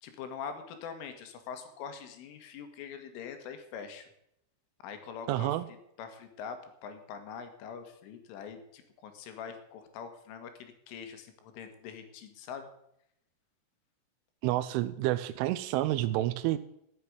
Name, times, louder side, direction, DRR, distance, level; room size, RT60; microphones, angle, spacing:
voice 1, 0.0-4.1 4.8-5.5 6.0-12.7, left 7 dB, 80° left, 7 dB, 4.2 m, -43 dB
voice 2, 5.3-5.7 14.4-16.6, right 15 dB, 85° right, 9 dB, 3.1 m, -29 dB
13.5 x 7.6 x 9.6 m, 0.78 s
omnidirectional pair, 5.6 m